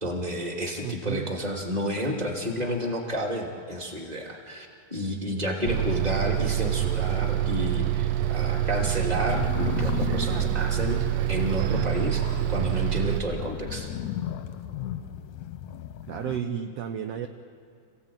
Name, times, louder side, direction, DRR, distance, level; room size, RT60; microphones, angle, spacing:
voice 1, 0.0-11.0 11.3-12.2 12.5-13.9, equal, 15° right, 0 dB, 2.5 m, -31 dB
voice 2, 0.8-1.3 10.2-10.5 16.1-17.3, right 9 dB, 70° right, 6 dB, 1.6 m, -33 dB
Bus, 5.7-13.2, right 12 dB, 90° right, 2.4 m, -26 dB
sound 1, 9.3-16.4, left 10 dB, 75° left, 1.8 m, -35 dB
27.0 x 16.5 x 9.1 m, 2.2 s
omnidirectional pair, 3.7 m